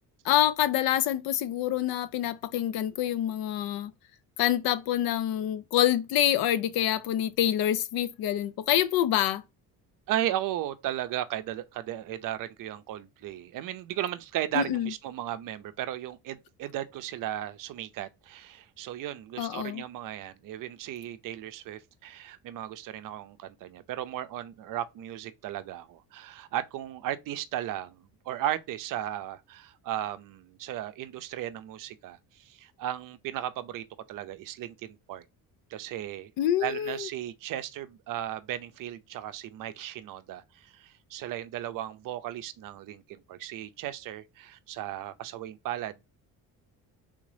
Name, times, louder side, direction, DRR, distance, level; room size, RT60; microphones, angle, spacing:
voice 1, 0.2-3.9 4.4-9.4 14.5-14.9 19.4-19.8 36.4-37.1, left 12 dB, 75° left, 0.5 m, -26 dB
voice 2, 10.1-35.2 35.7-36.3 36.6-45.9, right 12 dB, 65° right, 0.5 m, -36 dB
3.5 x 2.5 x 3.3 m
cardioid pair, 110°, 36 cm